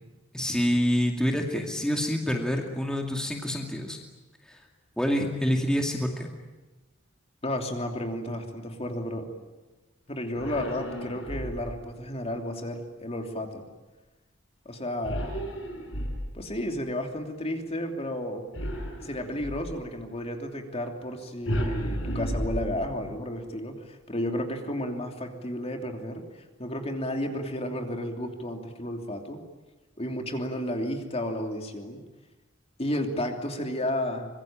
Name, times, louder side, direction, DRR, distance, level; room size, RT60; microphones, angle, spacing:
voice 1, 0.3-4.0 4.5-4.6 5.0-6.3, equal, 5° left, 2 dB, 2.4 m, -27 dB
voice 2, 7.4-9.3 10.1-13.6 14.6-15.3 16.3-18.4 19.0-29.4 30.0-32.0 32.8-34.3, left 1 dB, 30° left, 4 dB, 3.0 m, -32 dB
sound 1, 10.3-11.9 15.0-16.6 18.5-19.8 21.5-23.2, equal, 75° left, 6.0 m, -33 dB
24.5 x 22.5 x 9.0 m, 1.2 s
head